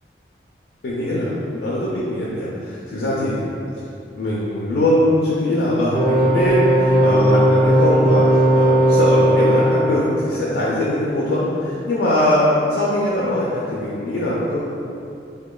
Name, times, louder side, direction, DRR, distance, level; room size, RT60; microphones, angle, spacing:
voice 1, 0.8-3.5 4.1-14.6, left 1 dB, 65° left, -7 dB, 0.3 m, -21 dB
sound 1, 5.9-9.8, right 1 dB, 5° right, 0.4 m, -16 dB
2.9 x 2.1 x 2.2 m, 2.6 s
head